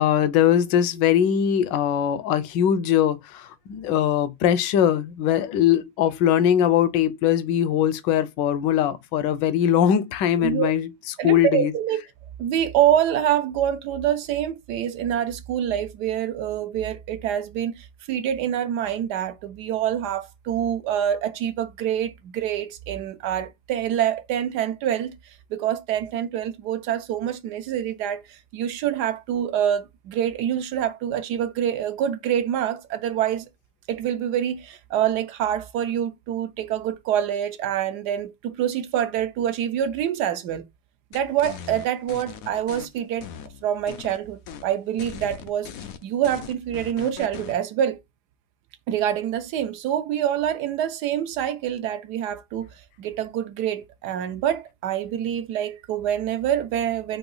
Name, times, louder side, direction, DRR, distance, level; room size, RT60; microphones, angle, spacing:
voice 1, 0.0-10.9 11.2-11.7, left 10 dB, 70° left, 1.2 m, -21 dB
voice 2, 10.4-10.7 11.2-12.0 12.4-25.1 25.5-33.5 33.9-40.7 41.1-43.3 43.6-45.7 46.0-48.0 48.9-52.7 53.0-57.2, right 10 dB, 75° right, 1.0 m, -26 dB
sound 1, 41.1-42.9 43.2-44.2 44.5-44.7 45.0-47.6, left 8 dB, 90° left, 0.7 m, -39 dB
4.9 x 2.7 x 3.9 m
omnidirectional pair, 2.2 m